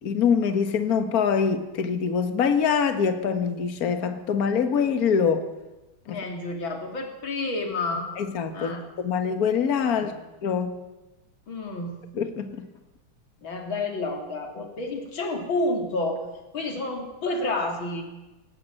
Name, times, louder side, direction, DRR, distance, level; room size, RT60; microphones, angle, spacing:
voice 1, 0.0-5.5 6.1-6.2 8.2-10.2 10.4-10.8 12.1-12.7, left 6 dB, 45° left, 8 dB, 1.8 m, -24 dB
voice 2, 6.1-8.1 8.5-8.8 10.0-10.2 11.5-12.0 13.4-16.3 16.5-18.1, left 2 dB, 65° left, 3 dB, 3.8 m, -30 dB
19.0 x 18.0 x 7.7 m, 1.1 s
omnidirectional pair, 2.3 m